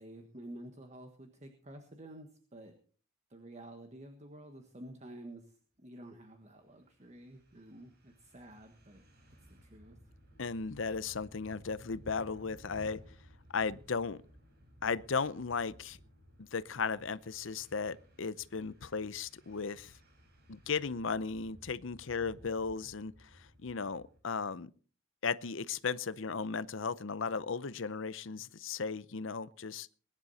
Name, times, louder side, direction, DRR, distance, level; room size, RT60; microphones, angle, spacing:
voice 1, 0.0-2.7 3.3-9.0 9.5-10.0, right 1 dB, 35° right, 1.5 m, -50 dB
sound 1, 6.5-24.2, equal, 50° right, 5.1 m, -58 dB
voice 2, 10.4-13.0 13.5-14.2 14.8-16.0 16.4-19.9 20.5-24.7 25.2-29.9, left 5 dB, 65° left, 0.7 m, -36 dB
21.0 x 11.0 x 4.2 m
head